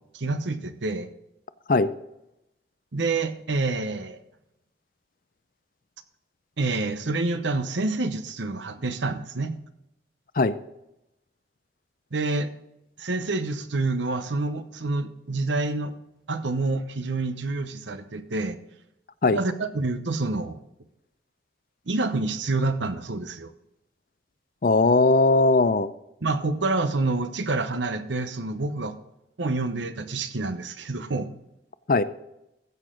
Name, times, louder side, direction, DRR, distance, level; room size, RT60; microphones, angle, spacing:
voice 1, 0.1-1.1 2.9-4.2 6.6-9.5 12.1-12.5 13.0-15.9 16.3-18.6 19.3-20.6 21.9-23.5 26.2-29.0 29.4-31.3, right 3 dB, 85° right, 10 dB, 0.9 m, -27 dB
voice 2, 24.6-25.9 31.9-32.0, left 3 dB, 50° left, 14 dB, 0.5 m, -19 dB
15.0 x 6.6 x 3.8 m, 0.86 s
head